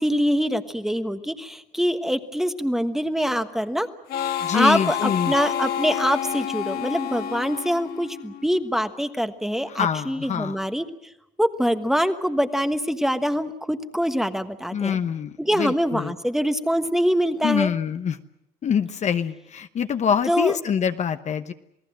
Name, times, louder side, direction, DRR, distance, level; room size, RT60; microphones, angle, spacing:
voice 1, 0.0-3.9 4.5-10.9 11.4-15.0 15.4-17.7 20.3-20.5, equal, ahead, 9 dB, 1.3 m, -24 dB
Harmonica, 4.1-8.6, left 9 dB, 65° left, 1.5 m, -29 dB
voice 2, 4.4-5.3 9.7-10.6 14.7-16.1 17.4-18.2 18.6-21.5, left 7 dB, 45° left, 9 dB, 1.0 m, -25 dB
28.0 x 18.0 x 7.6 m, 0.80 s
cardioid pair, 110°, 17 cm